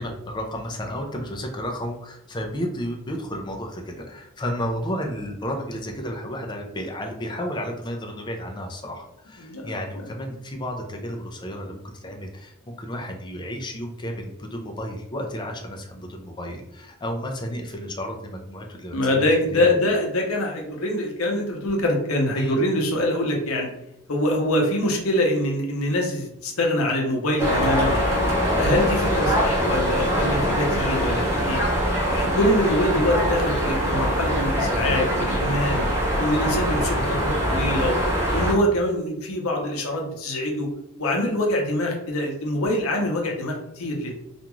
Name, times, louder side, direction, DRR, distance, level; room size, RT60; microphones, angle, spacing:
voice 1, 0.0-19.9 22.4-22.6, equal, 20° left, 2 dB, 0.4 m, -32 dB
voice 2, 9.4-10.0 18.9-23.7 24.1-27.9 28.5-31.6 32.1-35.8 36.2-38.0 38.3-40.7 41.0-44.1, left 1 dB, 75° left, 1 dB, 0.7 m, -24 dB
sound 1, 27.4-38.5, equal, 10° right, 0.8 m, -23 dB
2.5 x 2.3 x 3.0 m, 0.82 s
head